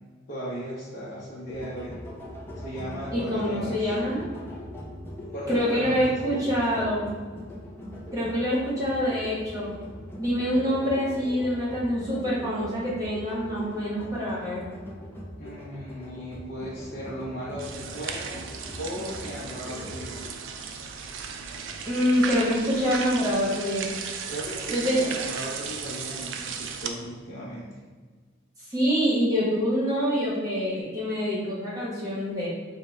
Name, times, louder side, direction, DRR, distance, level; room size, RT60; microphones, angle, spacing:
voice 1, 0.3-1.9 2.5-4.0 5.3-6.4 6.7-6.9 15.4-18.4 18.8-20.2 24.3-27.7, equal, 50° left, -8 dB, 0.8 m, -36 dB
sound 1, 1.5-20.3, left 1 dB, 10° left, 0.4 m, -41 dB
voice 2, 3.1-4.2 5.5-7.1 8.1-9.7 10.2-14.6 21.8-23.9 24.7-25.1 28.7-32.5, equal, 20° right, -7 dB, 0.9 m, -26 dB
sound 2, 17.6-26.9, right 6 dB, 70° right, 0.4 m, -35 dB
4.8 x 2.1 x 3.1 m, 1.5 s
head